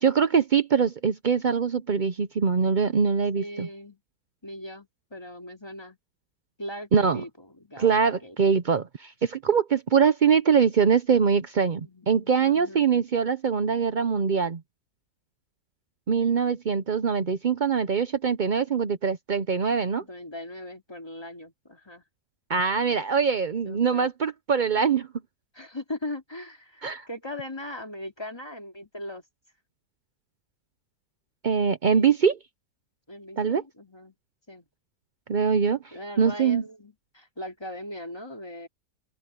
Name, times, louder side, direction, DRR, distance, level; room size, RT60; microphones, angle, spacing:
voice 1, 0.0-3.7 6.9-7.2 7.8-14.6 16.1-20.0 22.5-25.1 26.8-27.0 31.4-32.4 33.4-33.6 35.3-35.8 36.2-36.6, right 6 dB, 80° right, 0.4 m, -23 dB
voice 2, 3.4-4.0 4.4-6.0 6.6-7.9 8.2-8.4 11.8-12.9 20.0-22.0 23.6-24.1 25.5-29.2 31.9-32.1 33.1-34.2 34.5-34.7 35.9-38.7, left 1 dB, 15° left, 2.6 m, -39 dB
open air
omnidirectional pair, 1.9 m